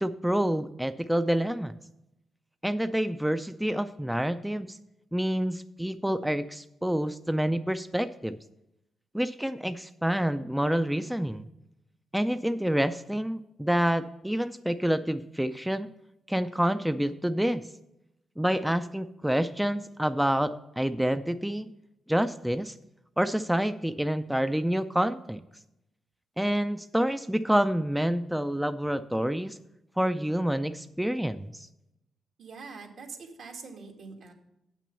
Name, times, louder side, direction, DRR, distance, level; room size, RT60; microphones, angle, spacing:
voice 1, 0.0-1.7 2.6-4.8 5.1-8.4 9.1-11.5 12.1-15.9 16.3-17.6 18.4-21.7 22.1-22.7 23.2-25.4 26.4-29.6 30.0-31.7, equal, 5° right, 10 dB, 0.4 m, -28 dB
voice 2, 32.4-34.3, right 4 dB, 75° right, 1 dB, 1.9 m, -44 dB
7.8 x 6.1 x 6.8 m, 0.86 s
cardioid pair, 85°, 0 cm